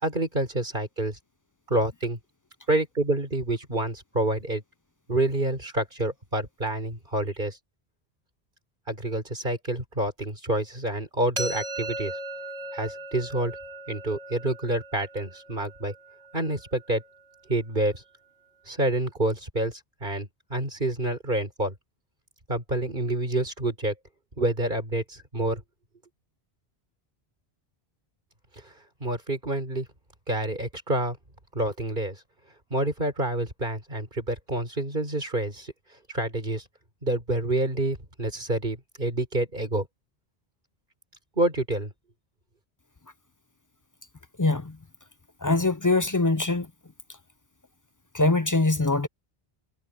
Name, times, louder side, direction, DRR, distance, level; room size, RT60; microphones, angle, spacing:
voice 1, 0.0-1.2 1.7-2.2 2.7-4.6 5.1-7.6 8.9-12.1 12.7-13.6 13.9-15.9 16.3-17.0 17.5-18.0 18.7-21.7 22.5-23.9 24.4-25.6 28.6-28.7 29.0-29.9 30.3-31.2 31.5-32.2 32.7-35.7 36.1-36.6 37.0-39.9 41.4-41.9, right 1 dB, 50° right, 4.7 m, -28 dB
sound 1, 11.4-17.2, right 1 dB, 85° right, 4.4 m, -38 dB
voice 2, 44.4-44.7 45.4-46.7 48.1-49.1, left 2 dB, 25° left, 0.4 m, -23 dB
omnidirectional pair, 1.1 m